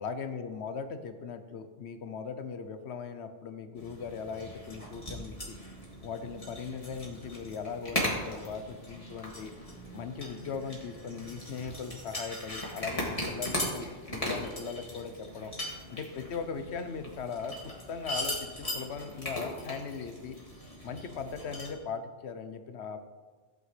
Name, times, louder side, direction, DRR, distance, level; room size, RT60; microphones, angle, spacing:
voice 1, 0.0-5.6 6.0-9.5 9.9-15.5 15.9-20.4 20.8-23.0, left 5 dB, 85° left, 9 dB, 1.1 m, -39 dB
sound 1, 3.8-21.7, left 1 dB, 35° left, 2.7 m, -38 dB
17.0 x 8.8 x 3.3 m, 1.4 s
omnidirectional pair, 1.1 m